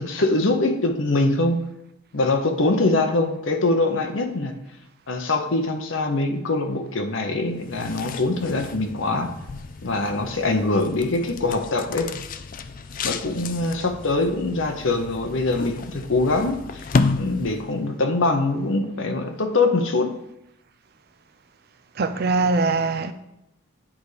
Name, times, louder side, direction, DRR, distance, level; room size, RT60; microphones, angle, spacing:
voice 1, 0.0-1.6 2.1-4.5 5.1-9.3 9.8-12.1 13.0-16.8 17.2-20.1, left 2 dB, 65° left, 0.9 m, -23 dB
sound 1, 7.5-17.9, left 4 dB, 40° left, 0.3 m, -31 dB
voice 2, 22.0-23.1, right 3 dB, 50° right, 0.5 m, -22 dB
8.6 x 4.2 x 4.9 m
head